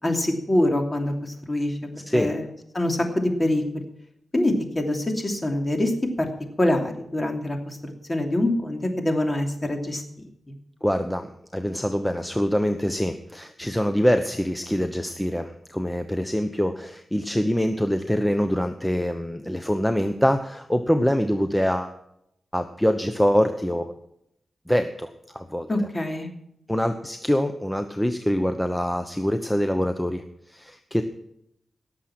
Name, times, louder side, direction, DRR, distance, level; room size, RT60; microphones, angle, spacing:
voice 1, 0.0-2.5 2.7-3.6 4.3-6.3 6.6-10.0 10.5-10.6 25.7-26.3, left 1 dB, 30° left, 4 dB, 2.9 m, -25 dB
voice 2, 10.8-22.0 22.5-24.0 24.7-25.7 26.7-31.0, equal, 5° left, 7 dB, 1.0 m, -24 dB
18.0 x 7.4 x 6.0 m, 0.77 s
cardioid pair, 75°, 0 cm